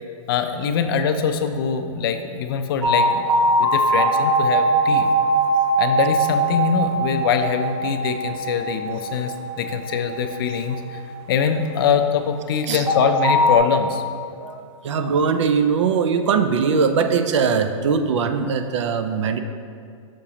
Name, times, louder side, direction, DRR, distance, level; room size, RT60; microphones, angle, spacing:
voice 1, 0.3-5.1 5.8-11.0 11.3-14.0, left 6 dB, 40° left, 7 dB, 0.4 m, -23 dB
sound 1, 2.8-11.9 12.9-13.6, right 1 dB, 15° right, 0.9 m, -21 dB
voice 2, 14.4-19.4, right 5 dB, 60° right, 8 dB, 0.5 m, -21 dB
6.4 x 5.9 x 2.9 m, 2.3 s
hypercardioid pair, 155°, 17 cm